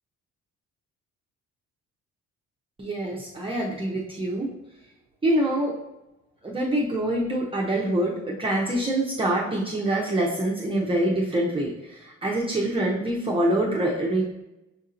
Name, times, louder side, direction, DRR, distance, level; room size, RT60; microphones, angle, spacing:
voice 1, 2.8-4.5 5.2-5.8 6.4-14.2, right 1 dB, 20° right, -4 dB, 0.7 m, -25 dB
6.5 x 2.7 x 2.5 m, 0.93 s
cardioid pair, 90°, 30 cm